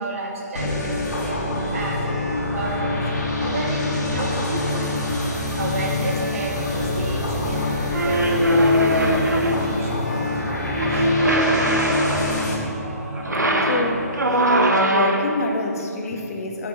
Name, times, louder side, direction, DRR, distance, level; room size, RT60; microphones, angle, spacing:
voice 1, 0.0-2.0 2.5-3.1 3.4-4.8 5.6-10.1 10.9-11.1, right 2 dB, 55° right, -2 dB, 2.7 m, -31 dB
sound 1, 0.6-12.6, left 2 dB, 85° left, 2.5 m, -26 dB
sound 2, 2.0-14.3, right 1 dB, 15° right, 2.5 m, -36 dB
sound 3, 7.9-9.8 10.7-12.5 13.2-15.4, equal, 90° right, 1.1 m, -20 dB
voice 2, 13.6-14.1 14.5-14.6 14.9-16.7, left 3 dB, 55° left, 2 dB, 1.6 m, -26 dB
9.6 x 5.9 x 7.7 m, 2.5 s
figure-of-eight pair, 135°, 9 cm